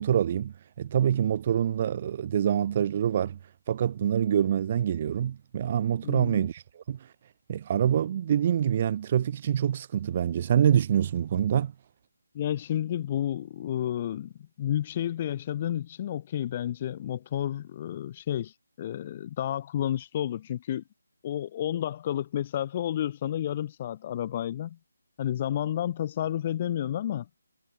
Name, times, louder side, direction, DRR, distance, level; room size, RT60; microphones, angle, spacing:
voice 1, 0.0-3.4 3.7-7.0 7.5-11.7, right 9 dB, 30° right, 0.8 m, -26 dB
voice 2, 6.0-6.4 12.3-14.3 14.6-20.8 21.2-24.8 25.2-27.3, left 11 dB, 25° left, 1.2 m, -31 dB
figure-of-eight pair, 165°, 0 cm